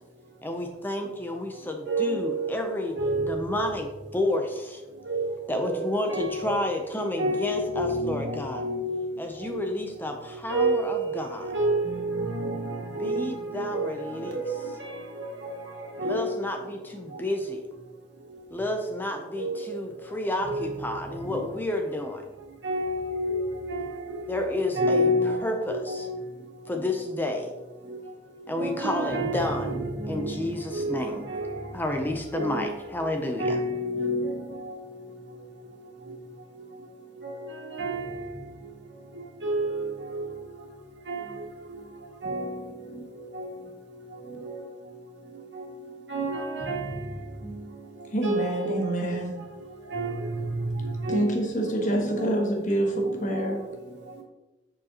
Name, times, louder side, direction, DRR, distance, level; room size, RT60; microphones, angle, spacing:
voice 1, 0.4-3.0 3.3-4.8 5.5-8.6 9.2-11.5 13.0-14.4 16.0-17.6 18.5-22.2 24.3-26.1 26.7-27.5 28.5-29.8 30.1-31.3 31.7-33.6, left 1 dB, 10° left, 0.5 m, -30 dB
voice 2, 1.9-3.7 5.0-6.6 7.2-9.0 9.5-9.6 10.5-16.3 19.3-19.8 20.4-20.9 21.2-21.4 22.6-26.2 26.8-26.9 28.6-31.6 32.0-32.7 33.4-34.7 37.2-38.3 39.1-40.2 41.1-41.3 42.2-42.6 42.9-43.0 43.3-43.5 44.2-44.6 45.5-45.6 46.1-47.1 47.4-47.6 48.2-49.2 49.9-51.3 51.9-52.4 53.0-53.5, right 1 dB, 75° right, 2.0 m, -30 dB
voice 3, 48.1-49.4 51.1-53.7, right 1 dB, 45° left, 1.3 m, -27 dB
7.3 x 6.4 x 2.9 m
head